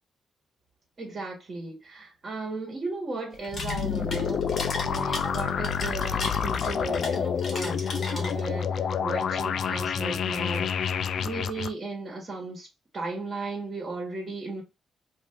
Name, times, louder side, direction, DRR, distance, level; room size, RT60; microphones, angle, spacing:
voice 1, 1.0-10.7 11.2-12.7 12.9-14.6, right 3 dB, 35° right, 1.3 m, -35 dB
sound 1, 3.3-8.6, left 3 dB, 45° left, 1.1 m, -36 dB
sound 2, 3.5-11.7, left 7 dB, 60° left, 0.3 m, -28 dB
2.6 x 2.5 x 3.2 m
cardioid pair, 120°, 0 cm